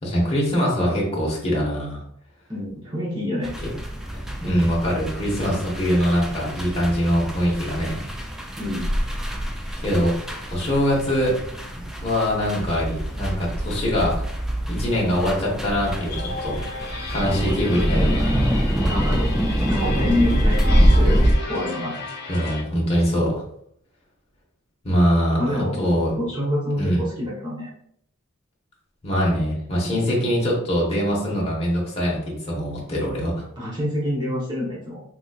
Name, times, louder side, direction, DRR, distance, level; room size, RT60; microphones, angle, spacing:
voice 1, 0.0-2.0 4.4-8.0 9.8-10.1 10.5-11.3 11.8-14.2 14.7-16.6 17.1-18.4 22.3-23.4 24.8-26.1 26.8-27.0 29.0-33.4, equal, 30° left, -4 dB, 1.1 m, -23 dB
voice 2, 2.5-3.5 8.6-8.9 18.9-19.3 19.7-21.2 21.5-22.0 25.4-25.8 26.2-27.7 33.6-35.0, left 1 dB, 20° right, -6 dB, 1.0 m, -26 dB
sound 1, 3.4-21.3, equal, ahead, 0.3 m, -24 dB
sound 2, 15.8-22.6, left 3 dB, 50° left, 0.8 m, -34 dB
3.6 x 2.9 x 2.3 m, 0.69 s
head